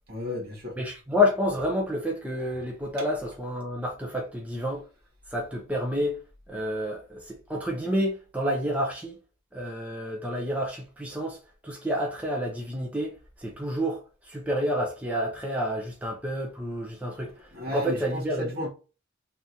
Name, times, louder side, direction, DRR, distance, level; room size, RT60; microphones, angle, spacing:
voice 1, 0.1-0.7 17.5-18.7, left 1 dB, 50° right, 1.7 m, -34 dB
voice 2, 0.8-4.8 5.3-6.2 6.5-9.2 9.5-11.4 11.6-13.1 13.4-17.3 17.6-18.5, left 1 dB, 5° right, 0.6 m, -29 dB
3.5 x 2.9 x 3.9 m
head